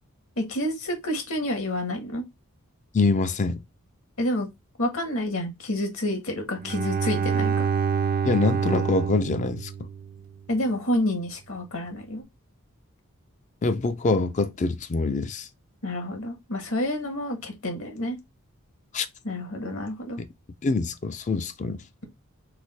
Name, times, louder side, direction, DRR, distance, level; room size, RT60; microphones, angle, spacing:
voice 1, 0.4-2.2 4.2-4.5 4.8-7.7 10.5-12.2 15.8-18.2 19.2-20.2, left 1 dB, 65° left, 1.4 m, -29 dB
voice 2, 2.9-3.6 8.2-9.9 13.6-15.5 18.9-19.1 20.2-20.3 20.6-21.8, left 3 dB, 35° left, 0.4 m, -25 dB
Bowed string instrument, 6.6-10.4, right 6 dB, 40° right, 0.4 m, -27 dB
4.7 x 2.1 x 4.1 m
head